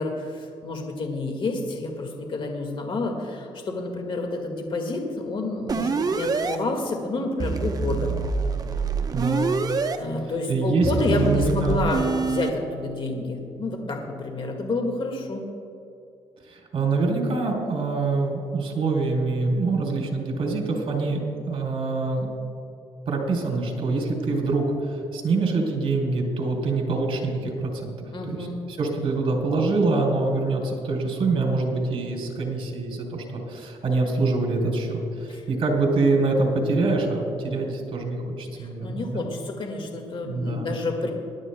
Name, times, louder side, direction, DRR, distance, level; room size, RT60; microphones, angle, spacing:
voice 1, 0.0-8.2 10.0-15.4 28.1-28.6 35.3-35.4 38.5-41.1, left 2 dB, 50° left, 2 dB, 1.8 m, -29 dB
sound 1, 5.7-6.6 7.4-10.0 10.8-12.5, right 4 dB, 35° right, 0.8 m, -26 dB
voice 2, 9.1-9.5 10.5-11.8 16.5-22.3 23.1-27.9 28.2-39.3 40.2-40.8, right 3 dB, 50° right, 1 dB, 3.3 m, -25 dB
21.0 x 11.5 x 2.2 m, 2.5 s
cardioid pair, 80°, 11 cm